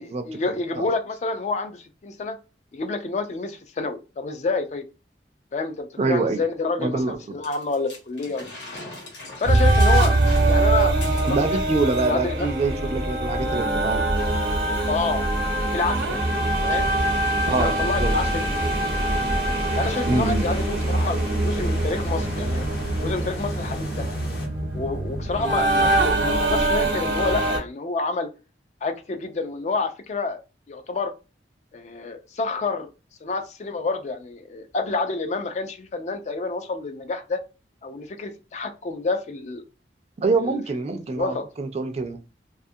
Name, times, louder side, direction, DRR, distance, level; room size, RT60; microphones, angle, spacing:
voice 1, 0.0-2.4 2.7-4.8 5.5-8.5 9.4-10.1 10.5-11.0 11.2-12.5 14.9-15.3 15.7-16.2 16.6-16.9 17.5-18.7 19.8-22.7 23.0-24.1 24.7-28.3 28.8-30.4 30.7-31.1 31.7-32.9 33.2-37.4 37.8-39.6 40.4-41.5, left 3 dB, 40° left, 0.3 m, -28 dB
voice 2, 6.0-6.4 6.8-7.4 11.3-14.1 17.5-18.1 20.1-20.4 40.2-42.2, right 3 dB, 35° right, 0.4 m, -25 dB
sound 1, 7.4-11.7 11.9-12.1 12.4-12.8 13.5-13.6, left 2 dB, 90° left, 1.0 m, -41 dB
sound 2, 9.4-27.6, right 2 dB, 90° right, 0.8 m, -23 dB
sound 3, 14.1-24.5, left 1 dB, 60° left, 0.9 m, -36 dB
2.5 x 2.4 x 2.6 m
head